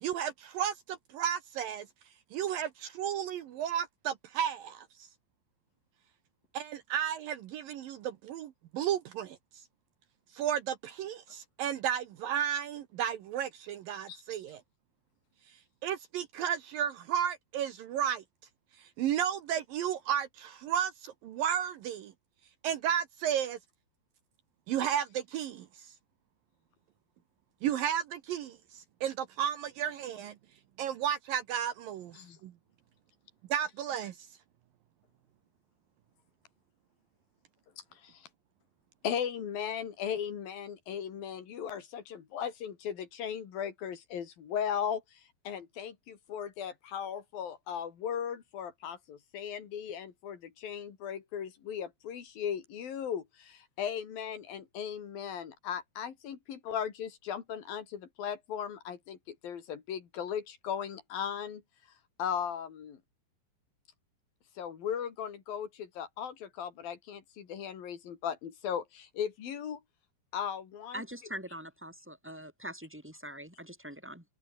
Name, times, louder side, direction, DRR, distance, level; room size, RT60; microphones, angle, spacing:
voice 1, 0.0-1.9 2.3-5.1 6.5-9.4 10.3-14.6 15.8-18.2 18.8-22.1 22.6-23.6 24.7-25.9 27.6-30.4 30.8-32.5 33.5-34.3, right 9 dB, 70° right, 2.4 m, -33 dB
voice 2, 39.0-61.6 62.2-63.0 64.6-69.8 70.3-71.0, left 8 dB, 55° left, 4.2 m, -37 dB
voice 3, 70.9-74.2, right 1 dB, ahead, 7.1 m, -43 dB
omnidirectional pair, 5.1 m